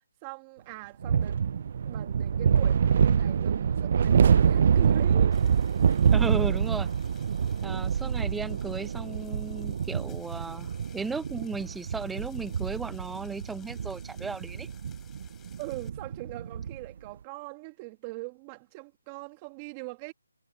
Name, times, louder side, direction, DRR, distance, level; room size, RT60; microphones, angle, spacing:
voice 1, 0.0-5.6 8.0-8.2 15.6-20.1, right 26 dB, 20° right, 1.9 m, -42 dB
sound 1, 1.0-16.9, right 7 dB, 45° right, 0.4 m, -26 dB
sound 2, 5.3-15.9, left 11 dB, 10° left, 6.0 m, -59 dB
voice 2, 6.1-6.9 7.6-14.7, right 4 dB, 5° right, 0.8 m, -35 dB
figure-of-eight pair, 160°, 0 cm